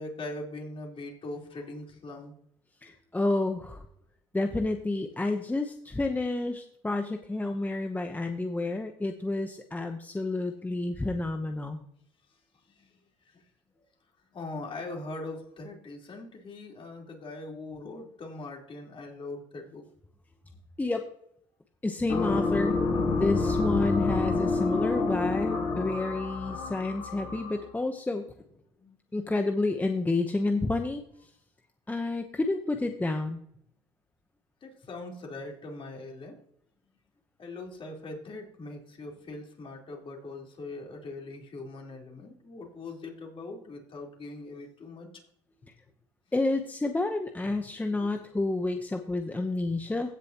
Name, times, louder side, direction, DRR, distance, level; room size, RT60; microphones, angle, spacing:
voice 1, 0.0-2.3 12.8-12.9 14.3-19.8 28.8-29.0 34.6-36.4 37.4-45.1 47.9-48.1 49.6-49.7, left 2 dB, 40° left, 0 dB, 4.1 m, -41 dB
voice 2, 2.8-3.8 4.3-11.8 20.8-21.1 21.8-28.2 29.1-31.0 31.9-33.4 46.3-50.2, left 2 dB, 10° left, 5 dB, 1.0 m, -30 dB
sound 1, 22.1-27.7, left 3 dB, 70° left, 4.1 m, -28 dB
16.5 x 6.8 x 3.0 m, 0.70 s
supercardioid pair, 80°, 13 cm